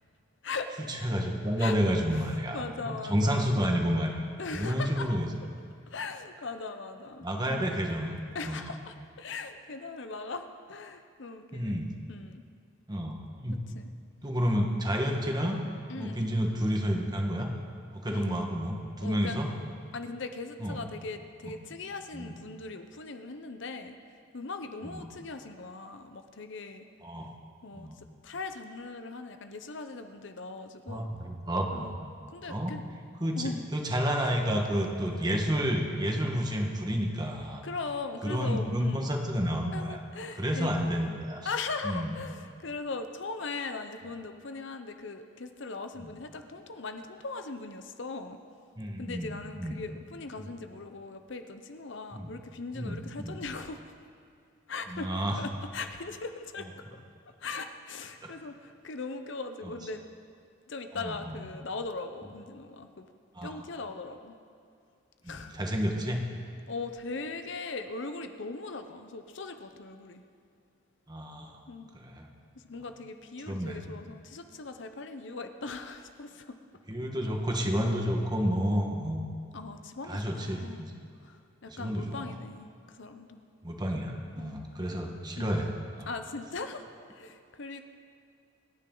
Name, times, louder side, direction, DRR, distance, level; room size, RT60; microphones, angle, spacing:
voice 1, 0.9-4.2 4.5-5.3 7.2-8.6 11.5-11.9 12.9-13.6 14.2-15.6 16.0-17.5 17.9-19.5 20.6-20.8 21.4-21.5 22.1-22.3 24.8-25.0 27.0-27.3 27.7-28.0 30.9-31.9 32.5-32.7 33.2-37.6 38.2-40.0 40.3-41.5 41.8-42.1 46.0-46.1 48.8-49.8 50.4-50.5 52.1-52.3 52.7-53.4 54.9-55.4 58.2-58.3 59.6-59.7 61.0-61.4 63.3-63.6 65.2-66.2 71.1-71.6 71.9-72.3 73.5-73.8 76.9-79.2 80.1-80.9 81.7-82.4 83.6-85.7 86.0-86.1, equal, 20° right, 2 dB, 1.5 m, -30 dB
voice 2, 2.1-3.6 4.4-5.2 5.9-7.8 8.3-11.8 12.1-12.4 13.7-13.9 15.9-16.3 18.1-18.3 19.0-19.4 19.9-24.0 24.3-26.9 27.6-31.1 31.7-31.9 32.3-32.8 33.4-33.7 37.6-39.1 39.7-40.9 41.4-48.4 49.0-53.8 54.7-56.7 57.4-60.0 60.7-63.1 63.4-64.4 65.3-65.6 66.7-70.2 71.7-71.9 72.6-76.6 79.5-80.9 81.2-83.4 84.4-84.6 85.4-85.5 86.1-86.8 87.1-87.8, left 3 dB, 65° left, 7 dB, 0.8 m, -39 dB
28.0 x 9.8 x 3.9 m, 2.4 s
head